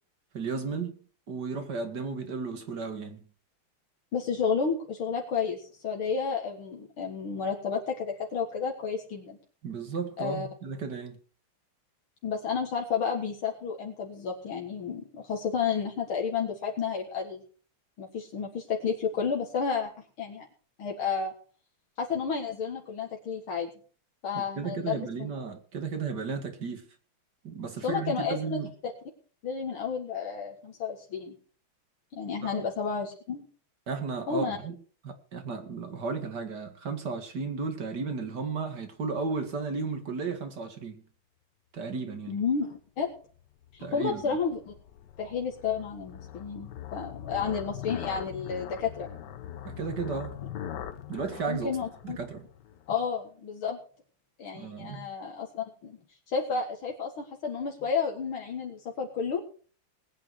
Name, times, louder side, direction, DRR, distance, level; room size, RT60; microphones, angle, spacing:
voice 1, 0.3-1.0 1.3-3.2 9.6-11.2 24.3-26.9 27.4-28.7 32.4-32.6 33.9-34.7 35.0-41.0 41.7-42.4 43.8-44.2 49.6-50.4 51.1-51.7 52.0-52.4 54.5-55.1, right 4 dB, 50° right, 2.5 m, -34 dB
voice 2, 4.1-9.4 10.2-10.5 12.2-17.4 18.0-19.9 20.2-20.5 20.8-21.3 22.0-23.7 24.2-25.3 27.8-28.6 29.4-31.4 32.1-33.4 34.3-34.6 42.3-43.1 43.7-44.7 45.2-49.1 51.5-52.2 52.9-53.8 54.4-56.0 56.3-59.4, left 6 dB, 75° left, 2.5 m, -31 dB
sound 1, 43.4-52.9, left 10 dB, 60° left, 1.4 m, -42 dB
20.0 x 9.1 x 4.7 m
omnidirectional pair, 2.3 m